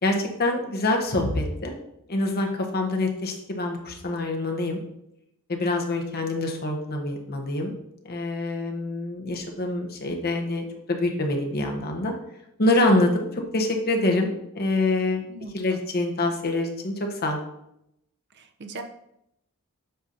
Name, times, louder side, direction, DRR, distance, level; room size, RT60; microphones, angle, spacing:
voice 1, 0.0-1.7 2.1-4.8 5.5-7.7 8.0-12.1 12.6-15.2 15.5-16.9 17.2-17.4, left 2 dB, 45° left, 2 dB, 1.0 m, -25 dB
voice 2, 15.3-15.8 18.3-18.8, right 2 dB, 50° right, 5 dB, 0.6 m, -39 dB
7.9 x 2.7 x 5.1 m, 0.79 s
head